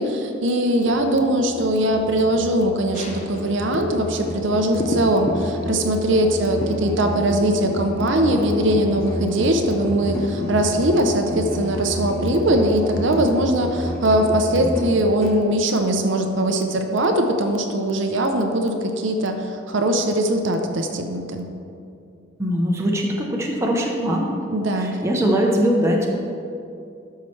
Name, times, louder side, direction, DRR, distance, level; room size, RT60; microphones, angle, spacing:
voice 1, 0.0-21.5 24.5-25.0, right 1 dB, 65° right, 4 dB, 0.6 m, -21 dB
Musical instrument, 0.8-15.4, left 1 dB, 15° left, 1.3 m, -30 dB
sound 1, 2.9-14.6 15.0-15.1, left 1 dB, 35° left, 0.8 m, -36 dB
voice 2, 22.4-24.3 24.8-26.1, equal, 15° right, -1 dB, 0.8 m, -21 dB
12.0 x 5.6 x 3.2 m, 2.5 s
head